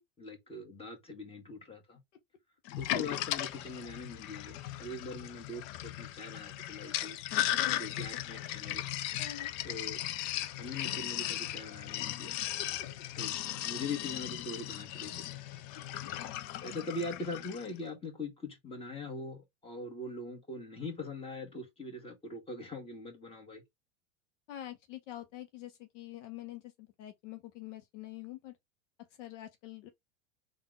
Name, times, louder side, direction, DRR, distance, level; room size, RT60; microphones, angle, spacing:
voice 1, 0.2-2.0 2.8-7.2 7.8-8.9 9.6-10.0 10.6-12.4 13.2-15.4 16.6-23.6, left 2 dB, 15° left, 1.8 m, -42 dB
Sink (filling or washing), 2.7-17.7, left 13 dB, 45° left, 0.5 m, -37 dB
voice 2, 7.3-7.8 9.2-9.5 24.5-28.6 29.2-29.9, left 13 dB, 70° left, 0.9 m, -46 dB
3.6 x 2.6 x 3.9 m
hypercardioid pair, 110°, 38 cm